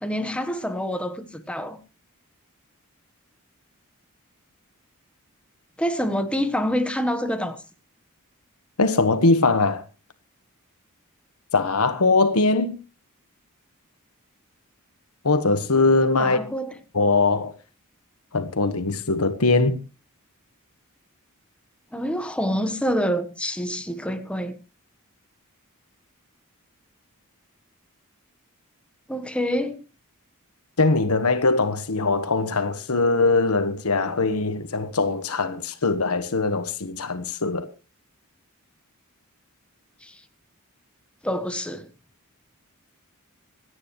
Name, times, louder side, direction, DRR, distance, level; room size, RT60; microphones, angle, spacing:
voice 1, 0.0-1.8 5.8-7.6 16.2-16.8 21.9-24.6 29.1-29.8 40.0-40.2 41.2-41.9, equal, 5° left, 1.3 m, -27 dB
voice 2, 8.8-9.8 11.5-12.8 15.2-16.4 16.9-17.5 18.3-19.8 30.8-37.7, left 3 dB, 80° left, 1.4 m, -21 dB
26.0 x 9.7 x 3.2 m
head